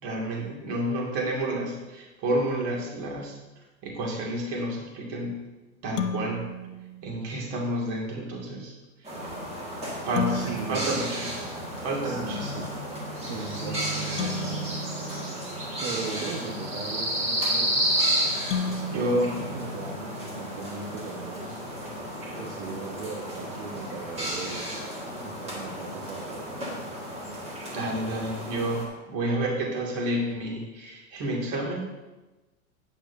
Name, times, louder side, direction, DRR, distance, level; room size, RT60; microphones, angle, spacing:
voice 1, 0.0-3.4 3.8-5.4 5.8-6.5 7.0-8.7 9.0-9.1 10.0-11.5 11.8-12.7 18.9-19.4 27.7-32.0, right 1 dB, 35° right, -2 dB, 2.3 m, -30 dB
sound 1, 6.0-7.6 10.2-12.2 14.2-16.3 18.5-20.6, left 3 dB, 60° left, 0.9 m, -35 dB
sound 2, 9.0-28.9, equal, 15° right, 1.8 m, -32 dB
voice 2, 10.3-10.9 11.4-11.5 12.0-12.7 13.3-15.4 15.8-17.8 18.6-21.7 22.3-24.7 25.2-26.8, right 4 dB, 50° right, -2 dB, 1.5 m, -38 dB
11.5 x 9.1 x 2.7 m, 1.1 s
supercardioid pair, 160°, 43 cm